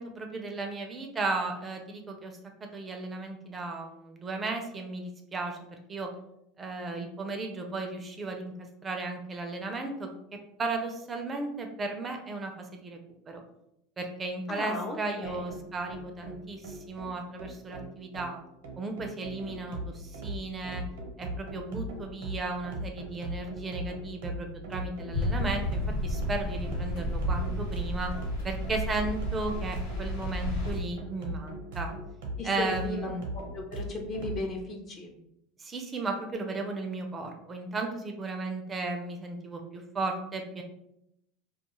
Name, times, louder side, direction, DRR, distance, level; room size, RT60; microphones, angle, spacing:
voice 1, 0.0-2.3 2.6-5.6 5.9-6.1 6.6-8.5 8.8-10.1 10.6-13.0 13.3-13.4 14.0-18.4 18.8-20.8 21.2-28.2 28.4-31.9 32.4-33.3 35.6-40.6, right 3 dB, 25° right, 4 dB, 0.4 m, -35 dB
voice 2, 14.5-15.5 32.4-33.0 33.3-35.1, left 2 dB, 40° left, 2 dB, 0.6 m, -36 dB
sound 1, 15.2-34.4, right 1 dB, 85° right, 0.7 m, -39 dB
sound 2, 25.1-30.7, left 1 dB, 90° left, 1.1 m, -32 dB
2.3 x 2.3 x 2.9 m, 0.81 s
supercardioid pair, 100°, 0 cm